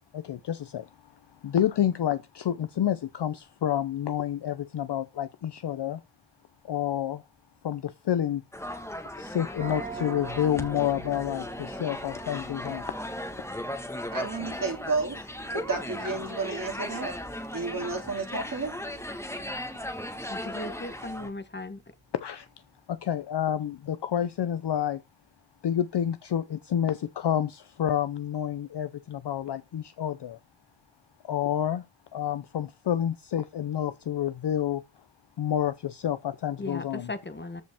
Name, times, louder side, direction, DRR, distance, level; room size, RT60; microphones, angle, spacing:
voice 1, 0.1-0.9 1.4-6.0 6.6-7.2 7.6-8.4 9.2-12.8 22.1-22.5 22.9-25.0 25.6-30.4 31.2-31.8 32.1-34.8 35.4-37.1, left 10 dB, 55° left, 0.5 m, -29 dB
sound 1, 8.5-21.3, left 1 dB, 5° left, 1.3 m, -37 dB
sound 2, 9.6-21.1, right 4 dB, 20° right, 2.4 m, -46 dB
voice 2, 14.1-15.2 15.5-17.1 17.5-18.7, right 3 dB, 40° right, 2.3 m, -31 dB
voice 3, 20.3-21.8 36.6-37.6, left 2 dB, 20° left, 1.0 m, -37 dB
13.5 x 5.1 x 3.5 m
wide cardioid pair, 160°, 50 cm